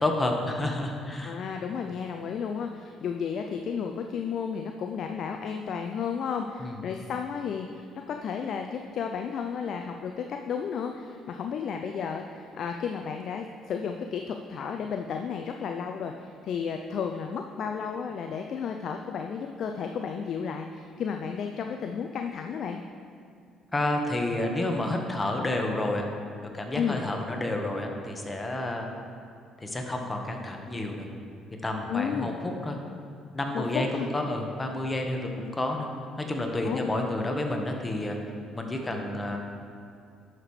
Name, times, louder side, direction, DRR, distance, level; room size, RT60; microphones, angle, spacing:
voice 1, 0.0-1.4 6.6-6.8 23.7-26.0 26.5-28.9 29.6-31.1 31.6-32.8 33.3-35.9 36.2-38.2 38.5-39.4, left 1 dB, 20° left, 2 dB, 1.3 m, -30 dB
voice 2, 1.2-22.8 26.8-27.0 31.9-32.3 33.5-34.1 36.6-36.9, left 6 dB, 60° left, 4 dB, 0.4 m, -33 dB
11.0 x 6.6 x 3.3 m, 2.4 s
supercardioid pair, 70°, 0 cm